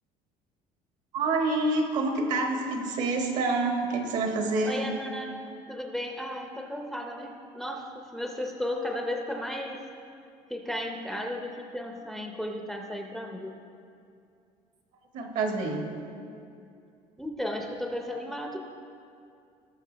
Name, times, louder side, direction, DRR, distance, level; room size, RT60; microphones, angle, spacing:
voice 1, 1.1-4.9 15.1-15.8, right 3 dB, 60° right, 3 dB, 1.5 m, -27 dB
voice 2, 4.6-5.4 5.7-9.9 10.5-13.6 17.2-18.6, left 1 dB, ahead, 2 dB, 0.6 m, -34 dB
18.0 x 6.4 x 3.3 m, 2.5 s
cardioid pair, 145°, 14 cm